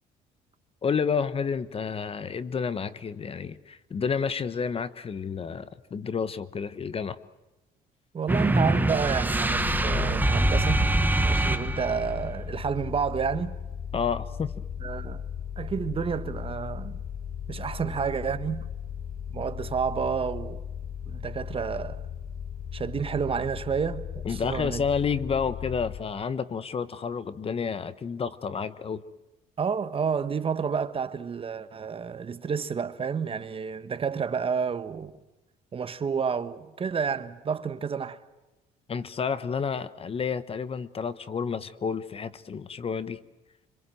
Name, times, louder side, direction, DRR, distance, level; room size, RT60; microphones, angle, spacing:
voice 1, 0.8-7.2 13.9-14.5 24.2-29.0 38.9-43.2, left 6 dB, 35° left, 1.2 m, -30 dB
voice 2, 8.1-10.8 11.2-13.6 14.8-15.2 15.6-17.0 17.5-18.7 19.3-20.6 21.1-22.0 22.7-24.8 29.6-35.1 35.7-38.2, right 6 dB, 35° right, 1.3 m, -30 dB
sound 1, 8.3-12.1, right 2 dB, 10° right, 1.3 m, -24 dB
sound 2, 9.5-26.0, left 7 dB, 60° left, 4.4 m, -36 dB
26.0 x 26.0 x 7.8 m
cardioid pair, 110°, 17 cm